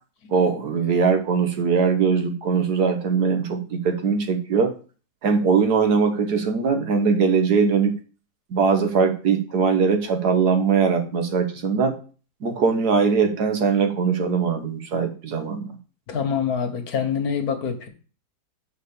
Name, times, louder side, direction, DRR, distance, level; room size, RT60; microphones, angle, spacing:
voice 1, 0.3-4.7 5.2-7.9 8.5-12.0 12.4-15.7, right 5 dB, 70° right, 6 dB, 1.8 m, -21 dB
voice 2, 16.1-17.9, left 7 dB, 65° left, 7 dB, 1.7 m, -25 dB
6.8 x 4.6 x 6.8 m, 0.37 s
omnidirectional pair, 1.8 m